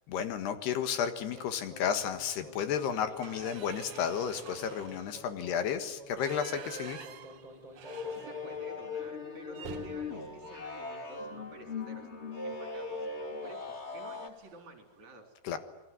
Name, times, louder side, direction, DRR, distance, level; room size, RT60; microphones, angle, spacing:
voice 1, 0.1-7.1 15.5-15.6, left 8 dB, 75° left, 9 dB, 3.6 m, -32 dB
sound 1, 1.0-9.2, left 1 dB, 10° left, 5.3 m, -51 dB
sound 2, 1.4-1.8 2.1-2.3 2.7-8.7 9.0-9.1 9.5-11.7 13.0-13.3 13.6-13.8 14.1-14.7, right 9 dB, 75° right, 1.5 m, -49 dB
sound 3, 7.8-14.3, left 4 dB, 25° left, 1.7 m, -39 dB
voice 2, 8.1-12.1 12.4-15.3, right 2 dB, 45° right, 3 dB, 5.0 m, -51 dB
28.0 x 22.0 x 9.5 m, 1.0 s
omnidirectional pair, 4.8 m